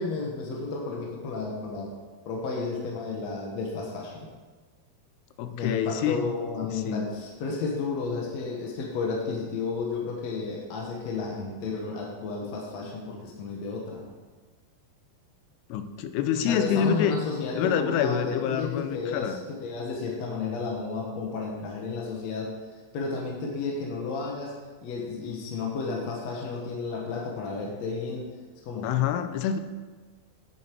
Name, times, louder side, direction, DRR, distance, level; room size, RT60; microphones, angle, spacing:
voice 1, 0.0-2.0 2.2-4.3 5.5-14.1 16.4-22.5 22.9-24.5 24.8-28.3 28.6-28.9, left 4 dB, 65° left, -1 dB, 1.7 m, -32 dB
voice 2, 5.4-6.3 6.6-7.1 15.7-17.2 17.6-19.4 28.8-29.6, left 8 dB, 85° left, 10 dB, 2.7 m, -27 dB
9.6 x 8.3 x 4.5 m, 1.4 s
omnidirectional pair, 4.7 m